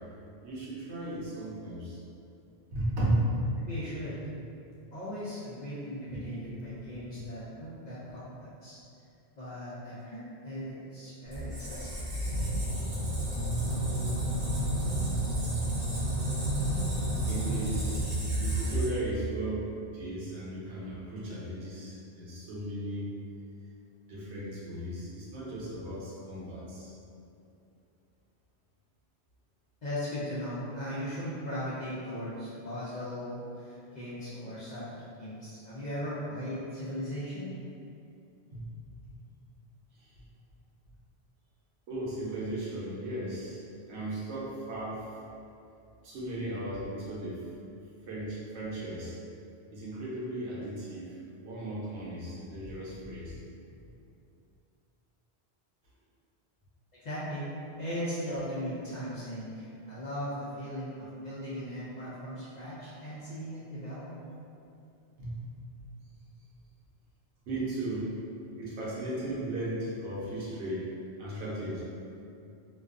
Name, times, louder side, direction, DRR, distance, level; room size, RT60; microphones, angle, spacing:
voice 1, 0.4-2.0 2.7-3.3 6.1-6.3 6.7-7.3 16.9-17.0 17.3-18.0 18.4-19.6 19.9-23.1 24.1-26.9 38.5-38.7 41.9-43.6 43.9-45.1 46.0-47.4 48.1-49.2 49.7-51.1 51.4-53.4 65.2-65.4 67.5-68.1 68.5-70.9 71.2-71.8, right 1 dB, 90° right, -7 dB, 0.9 m, -36 dB
voice 2, 3.6-4.2 4.9-8.8 9.4-12.1 29.8-37.5 57.0-57.4 57.8-64.1, equal, 55° left, -9 dB, 0.5 m, -38 dB
Squeak, 11.3-19.2, right 1 dB, 45° right, 0.7 m, -30 dB
2.3 x 2.2 x 2.4 m, 2.6 s
omnidirectional pair, 1.1 m